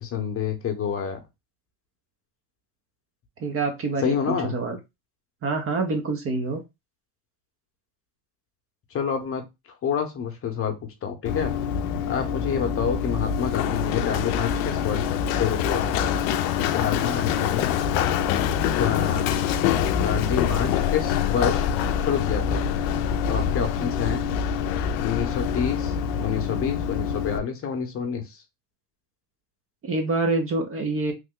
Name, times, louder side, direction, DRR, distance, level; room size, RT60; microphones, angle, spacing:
voice 1, 0.0-1.2 4.0-4.5 8.9-9.4 9.8-11.5 12.1-16.0 16.7-17.7 18.7-19.3 20.0-21.7 22.0-22.6 23.3-24.2 25.0-28.4, left 7 dB, 30° left, 0.8 m, -28 dB
voice 2, 3.4-4.8 5.4-6.6 29.8-31.1, right 3 dB, 30° right, 0.6 m, -26 dB
Run, 11.3-27.4, left 8 dB, 70° left, 0.5 m, -25 dB
3.2 x 2.2 x 3.6 m
supercardioid pair, 125°, 45 cm